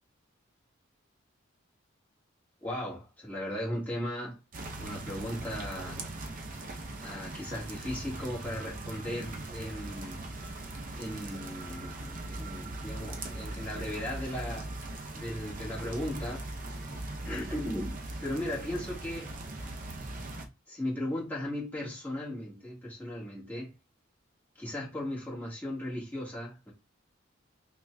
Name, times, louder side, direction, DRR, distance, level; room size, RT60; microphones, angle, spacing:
voice 1, 2.6-4.4 4.8-6.0 7.0-10.2 11.0-14.9 15.1-16.5 16.7-19.3 20.7-23.7 24.5-26.7, left 1 dB, 10° left, 1.5 m, -37 dB
sound 1, 4.5-20.5, right 2 dB, 45° right, 0.6 m, -40 dB
5.7 x 2.4 x 2.2 m
head